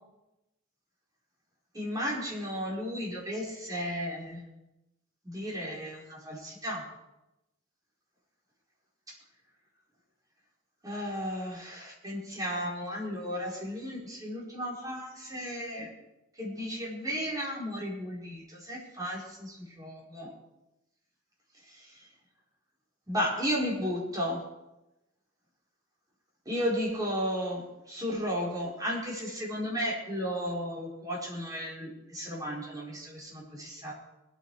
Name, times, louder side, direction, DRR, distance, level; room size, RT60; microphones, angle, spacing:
voice 1, 1.7-4.4 5.2-6.8 10.8-15.9 16.4-20.3 21.7-21.9 23.1-24.4 26.5-33.9, equal, 20° right, -4 dB, 4.4 m, -34 dB
20.5 x 9.1 x 4.8 m, 0.94 s
head